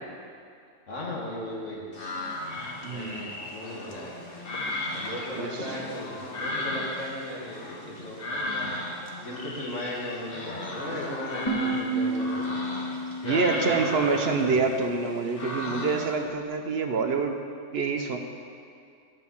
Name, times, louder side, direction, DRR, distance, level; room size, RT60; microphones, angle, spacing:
voice 1, 0.9-1.9 2.9-4.1 4.9-8.7 9.2-12.4 13.2-14.8, left 1 dB, 75° left, -4 dB, 2.3 m, -36 dB
sound 1, 1.9-16.2, left 1 dB, 50° left, 1.2 m, -36 dB
voice 2, 2.8-3.5 5.3-5.7 13.2-17.4 17.7-18.2, right 4 dB, 60° right, 4 dB, 0.9 m, -27 dB
sound 2, 11.5-14.5, right 2 dB, 20° left, 1.8 m, -31 dB
10.5 x 5.4 x 7.1 m, 2.3 s
omnidirectional pair, 1.3 m